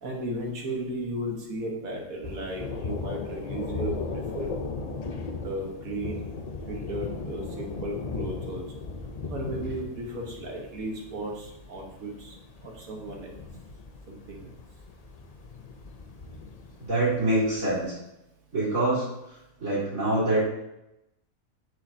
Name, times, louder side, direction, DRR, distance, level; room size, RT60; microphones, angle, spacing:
voice 1, 0.0-4.5 5.4-6.2 6.7-8.6 9.3-12.3 12.6-13.4 14.1-14.5, right 1 dB, 80° right, 0 dB, 1.8 m, -35 dB
Thunder, 2.2-17.8, left 4 dB, 45° left, 0.5 m, -37 dB
voice 2, 16.8-18.0 18.5-20.4, right 1 dB, 65° right, -11 dB, 2.9 m, -26 dB
7.5 x 6.6 x 2.8 m, 0.90 s
omnidirectional pair, 1.4 m